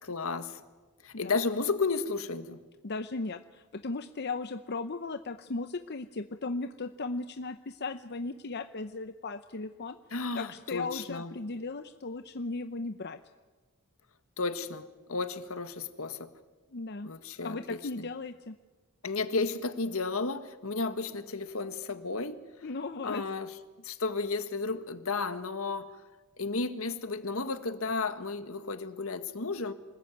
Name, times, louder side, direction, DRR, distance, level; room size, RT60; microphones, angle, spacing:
voice 1, 0.0-0.6 1.0-2.6 10.1-11.3 14.4-16.3 17.0-18.1 19.0-22.4 23.0-23.5 23.8-26.0 26.4-29.7, left 3 dB, 70° left, 11 dB, 1.7 m, -33 dB
voice 2, 2.8-10.0 10.3-13.2 16.7-17.1 17.4-18.5 22.6-23.2, left 3 dB, 50° left, 9 dB, 0.7 m, -36 dB
26.0 x 20.5 x 9.4 m, 1.3 s
head